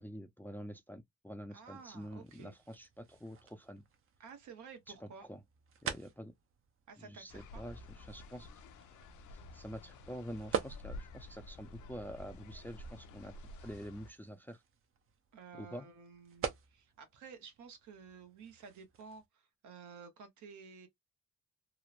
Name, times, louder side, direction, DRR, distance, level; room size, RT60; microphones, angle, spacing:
voice 1, 0.0-3.8 5.0-5.4 5.8-6.3 7.0-8.5 9.3-13.3 13.6-14.6 15.6-15.9, equal, 5° left, 0.4 m, -47 dB
voice 2, 1.5-2.5 4.2-5.3 6.9-7.6 15.3-20.9, right 5 dB, 75° right, 0.9 m, -53 dB
sound 1, 1.6-19.3, right 7 dB, 45° right, 0.6 m, -47 dB
sound 2, 7.3-14.1, left 1 dB, 75° left, 0.6 m, -50 dB
3.0 x 2.0 x 2.4 m
cardioid pair, 90°, 30 cm